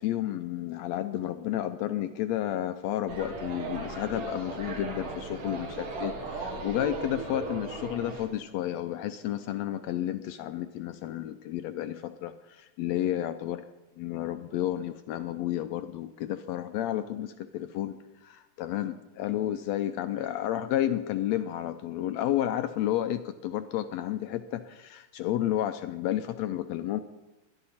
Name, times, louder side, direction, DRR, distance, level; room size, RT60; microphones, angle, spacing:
voice 1, 0.0-13.6 14.0-27.0, left 12 dB, 80° left, 10 dB, 1.6 m, -31 dB
sound 1, 3.1-8.3, right 3 dB, 90° right, 3.8 m, -37 dB
22.5 x 11.0 x 4.3 m, 0.98 s
omnidirectional pair, 3.6 m